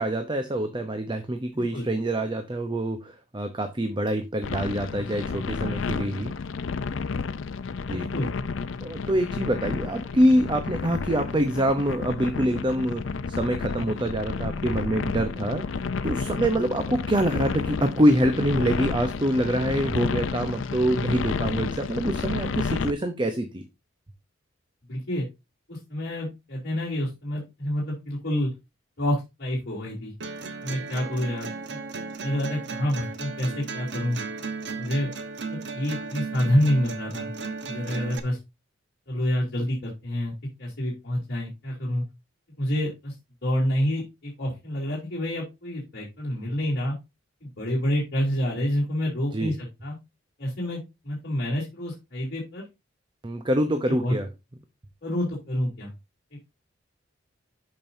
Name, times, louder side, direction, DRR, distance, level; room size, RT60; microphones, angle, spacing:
voice 1, 0.0-6.3 7.9-8.1 8.8-23.6 49.3-49.5 53.2-54.3, right 1 dB, 25° right, 0.8 m, -25 dB
voice 2, 1.5-1.9 7.9-8.3 24.9-25.2 25.7-28.5 29.0-30.1 30.6-31.8 32.2-34.2 34.8-35.1 35.5-37.3 37.7-38.4 39.1-40.3 40.6-42.0 42.6-43.1 43.4-46.9 47.4-50.0 50.4-52.6 54.0-54.1 55.0-55.9 56.3-56.4, equal, 55° left, 3.1 m, -28 dB
sound 1, 4.4-22.9, left 4 dB, 75° left, 0.5 m, -31 dB
sound 2, 30.2-38.2, right 4 dB, 65° right, 1.1 m, -35 dB
12.5 x 5.4 x 2.7 m
head